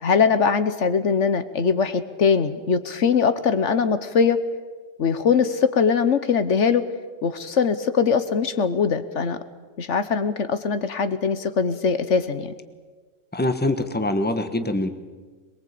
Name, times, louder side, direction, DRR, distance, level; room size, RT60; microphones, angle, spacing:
voice 1, 0.0-4.4 5.0-6.8 7.2-9.4 9.8-12.5, left 6 dB, 70° left, 12 dB, 1.3 m, -21 dB
voice 2, 13.3-14.9, left 1 dB, 10° left, 9 dB, 1.3 m, -24 dB
22.5 x 22.5 x 8.5 m, 1.4 s
omnidirectional pair, 1.3 m